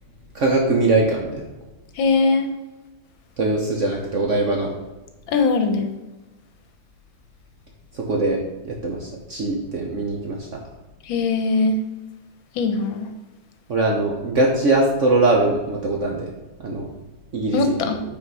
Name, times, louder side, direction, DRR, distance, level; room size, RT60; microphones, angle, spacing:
voice 1, 0.3-1.4 3.4-4.7 8.0-10.5 13.7-16.3 16.6-16.9 17.3-17.8, right 2 dB, 55° right, 0 dB, 0.9 m, -21 dB
voice 2, 2.0-2.5 5.3-5.9 11.1-11.8 12.5-13.1 17.5-18.0, left 4 dB, 80° left, 6 dB, 1.6 m, -20 dB
6.2 x 4.2 x 5.4 m, 1.1 s
omnidirectional pair, 2.1 m